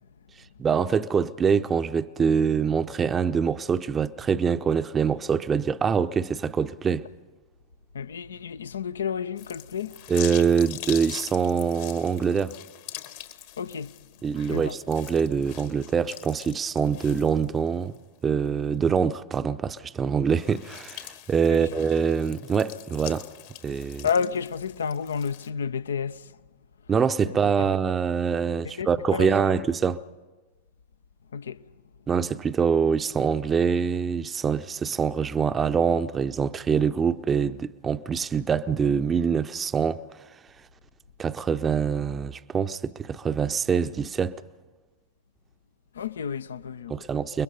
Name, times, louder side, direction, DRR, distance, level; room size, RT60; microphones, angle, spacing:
voice 1, 0.6-7.1 10.1-12.6 14.2-17.9 18.2-23.3 23.6-24.1 26.9-30.0 32.1-40.0 41.2-44.3 46.9-47.4, right 6 dB, 20° right, 0.7 m, -24 dB
voice 2, 7.9-10.0 13.6-13.9 14.5-14.8 21.5-21.7 24.0-26.3 27.2-27.3 28.8-29.6 31.3-31.6 45.9-46.9, left 6 dB, 70° left, 0.7 m, -31 dB
sound 1, 9.4-18.0 18.4-18.5 20.2-25.5, left 13 dB, 50° left, 1.6 m, -43 dB
29.5 x 21.5 x 5.4 m
figure-of-eight pair, 90°, 0 cm